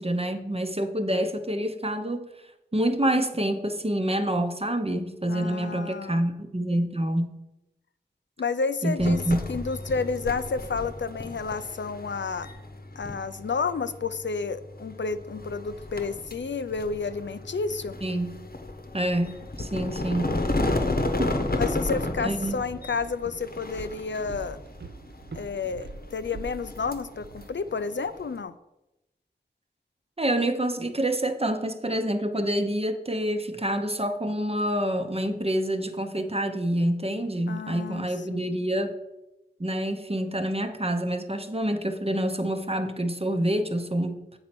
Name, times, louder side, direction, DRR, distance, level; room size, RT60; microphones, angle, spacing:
voice 1, 0.0-2.3 2.7-7.4 8.8-9.4 18.0-18.3 18.9-20.3 22.2-22.6 30.2-38.9 39.6-44.4, right 1 dB, 30° right, 7 dB, 0.8 m, -27 dB
voice 2, 5.3-6.2 8.4-9.2 9.5-12.5 13.0-17.9 21.6-24.6 25.3-28.5 37.5-38.4, left 4 dB, 85° left, 11 dB, 0.4 m, -31 dB
sound 1, 9.0-28.4, left 2 dB, 55° left, 0.9 m, -33 dB
Walk footsteps, 21.4-27.5, right 3 dB, 70° right, 0.6 m, -44 dB
7.8 x 4.2 x 6.0 m, 0.93 s
wide cardioid pair, 40°, 19 cm